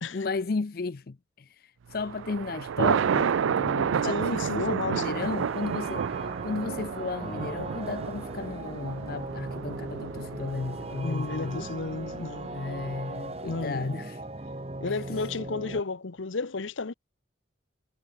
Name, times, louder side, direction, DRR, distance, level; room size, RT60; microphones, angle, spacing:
voice 1, 0.1-6.1 6.4-11.7 12.5-14.2 14.9-15.0, left 3 dB, 50° left, 0.5 m, -34 dB
Thunder, 1.9-13.3, right 7 dB, 90° right, 0.4 m, -31 dB
voice 2, 4.0-5.3 11.0-12.5 13.4-14.0 14.8-16.9, left 3 dB, 80° left, 0.9 m, -33 dB
sound 1, 5.1-15.8, right 2 dB, 30° right, 1.4 m, -39 dB
Acoustic guitar, 7.2-10.5, left 1 dB, 20° left, 1.9 m, -48 dB
head